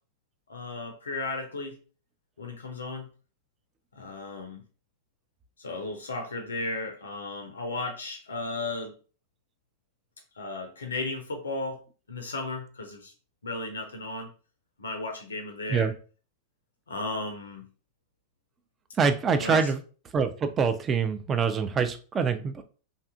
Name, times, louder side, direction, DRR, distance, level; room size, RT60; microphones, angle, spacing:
voice 1, 0.5-1.8 2.4-3.1 4.0-4.6 5.6-8.9 10.4-11.8 12.1-13.1 13.4-14.3 14.8-15.9 16.9-17.7 19.4-19.7, left 2 dB, 70° left, 5 dB, 0.4 m, -35 dB
voice 2, 19.0-19.8 20.1-22.6, right 5 dB, 25° right, 8 dB, 0.3 m, -25 dB
2.6 x 2.4 x 2.3 m, 0.37 s
figure-of-eight pair, 90°, 0 cm